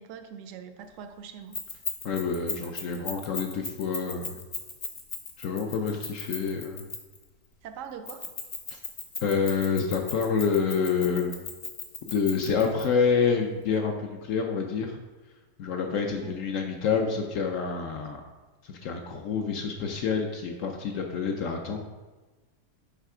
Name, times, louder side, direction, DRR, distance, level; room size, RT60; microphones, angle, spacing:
voice 1, 0.0-1.6 7.6-8.3 16.0-16.4, right 7 dB, 70° right, 8 dB, 0.8 m, -43 dB
Keys jangling, 1.5-7.2 8.1-12.8, left 4 dB, 40° left, 0.8 m, -36 dB
voice 2, 2.0-4.4 5.4-6.9 9.2-11.3 12.0-15.0 15.6-18.2 18.6-21.8, left 5 dB, 70° left, 2 dB, 0.9 m, -27 dB
5.7 x 3.5 x 4.8 m, 1.2 s
omnidirectional pair, 1.6 m